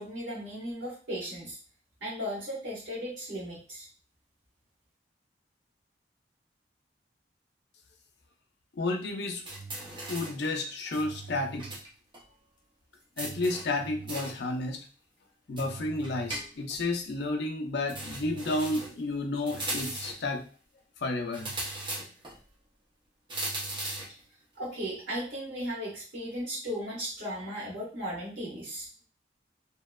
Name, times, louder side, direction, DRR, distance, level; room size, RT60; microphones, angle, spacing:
voice 1, 0.0-1.6 2.0-3.9 24.6-28.9, equal, 75° right, -6 dB, 1.1 m, -36 dB
voice 2, 8.8-9.4 10.1-11.7 13.2-14.9 15.5-20.5 21.0-21.5, left 2 dB, 65° left, 4 dB, 0.4 m, -31 dB
sound 1, 9.5-10.4 10.9-11.9 12.1-12.2 13.2-14.4 15.6-16.8 17.9-19.0 19.5-20.3 21.3-22.4 23.3-24.2, right 2 dB, 25° right, 0.6 m, -38 dB
2.8 x 2.0 x 2.2 m, 0.37 s
head